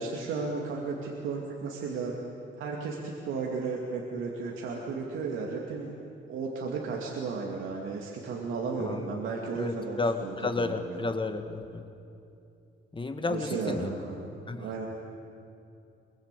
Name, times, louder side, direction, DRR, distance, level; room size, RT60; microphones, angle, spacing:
voice 1, 0.0-2.1 2.6-5.9 6.3-11.0 13.3-14.2 14.6-14.9, right 4 dB, 90° right, -1 dB, 2.5 m, -34 dB
voice 2, 9.5-11.8 12.9-13.9 14.5-14.7, left 3 dB, 25° left, 7 dB, 2.0 m, -32 dB
23.0 x 22.5 x 8.4 m, 2.6 s
cardioid pair, 90°, 20 cm